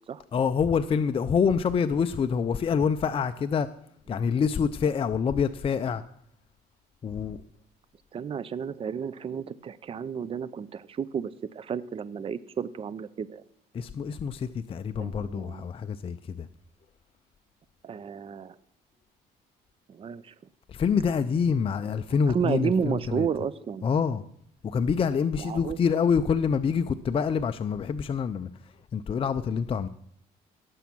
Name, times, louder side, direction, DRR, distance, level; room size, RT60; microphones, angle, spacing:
voice 1, 0.3-3.7 4.1-6.0 7.0-7.4 13.7-16.5 20.7-23.3 23.8-24.2 24.6-28.5 28.9-29.9, left 6 dB, 35° left, 0.5 m, -26 dB
voice 2, 8.1-13.4 15.0-15.7 17.8-18.6 19.9-20.3 22.3-23.9 25.3-25.8, right 7 dB, 35° right, 0.6 m, -32 dB
17.5 x 7.1 x 6.1 m
cardioid pair, 110°, 17 cm